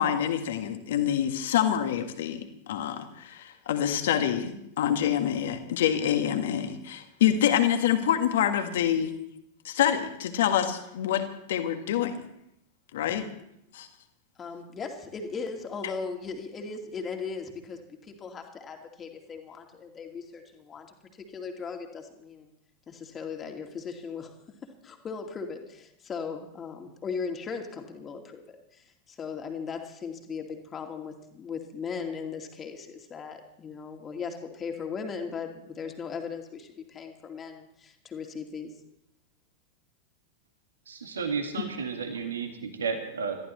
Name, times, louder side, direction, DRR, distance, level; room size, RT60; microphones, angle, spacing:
voice 1, 0.0-9.1 9.6-12.2 12.9-13.3 13.7-13.9, left 10 dB, 55° left, 7 dB, 1.7 m, -26 dB
voice 2, 14.4-20.9 21.1-22.5 22.9-24.3 24.8-38.7, left 5 dB, 25° left, 3 dB, 2.3 m, -38 dB
voice 3, 40.9-43.4, right 5 dB, 70° right, 5 dB, 2.0 m, -32 dB
27.5 x 14.5 x 3.2 m, 0.79 s
figure-of-eight pair, 90°, 0 cm